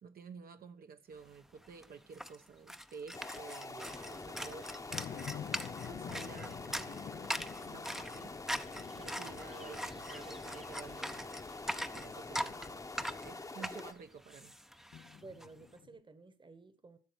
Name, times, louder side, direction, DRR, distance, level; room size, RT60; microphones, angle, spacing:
voice 1, 0.0-5.3 5.9-7.0 7.5-8.3 9.0-11.3 11.9-12.8 13.2-14.5, right 5 dB, 70° right, 1.1 m, -52 dB
sound 1, 1.3-1.4 1.6-15.5, equal, ahead, 0.7 m, -42 dB
sound 2, 3.1-13.9, left 3 dB, 20° left, 0.9 m, -46 dB
voice 2, 3.7-4.5 13.7-13.9 15.2-17.0, right 3 dB, 30° right, 1.3 m, -54 dB
sound 3, 4.9-10.4 11.0-11.1 14.9-16.0, left 9 dB, 60° left, 0.6 m, -48 dB
14.5 x 6.8 x 6.3 m
cardioid pair, 90°, 16 cm